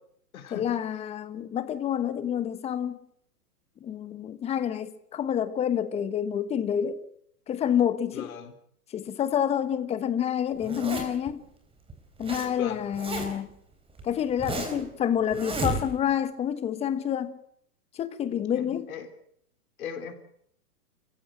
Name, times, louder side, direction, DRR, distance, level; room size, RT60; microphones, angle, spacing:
voice 1, 0.5-3.0 3.8-7.0 7.5-8.3 8.9-11.4 12.2-13.5 14.0-17.4 17.9-18.9, left 9 dB, 15° left, 1.1 m, -28 dB
voice 2, 8.1-8.5 12.6-12.8 18.5-19.1 19.8-20.1, left 8 dB, 65° left, 3.8 m, -38 dB
Zipper (clothing), 10.6-11.3 11.9-12.5 12.7-13.5 14.0-14.9 15.3-16.1, right 3 dB, 10° right, 3.9 m, -32 dB
29.5 x 15.5 x 7.8 m
hypercardioid pair, 140°, 46 cm